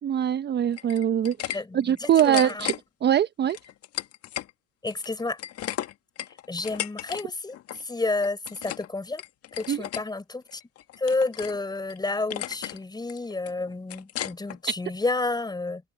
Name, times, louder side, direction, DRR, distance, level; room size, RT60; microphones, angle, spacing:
voice 1, 0.0-2.7 3.0-3.6 9.7-9.9, right 10 dB, 30° right, 1.1 m, -23 dB
sound 1, 0.7-1.6 1.9-2.8 3.5-4.5 4.9-7.2 7.5-7.8 8.2-8.9 9.2-10.0 10.5-11.6 11.9-12.0 12.3-12.8 13.1-14.6, left 12 dB, 40° left, 2.0 m, -35 dB
voice 2, 1.5-2.6 4.8-5.4 6.5-7.5 7.8-9.2 9.6-10.6 11.0-15.8, left 3 dB, 10° left, 5.2 m, -30 dB
open air
hypercardioid pair, 90°, 36 cm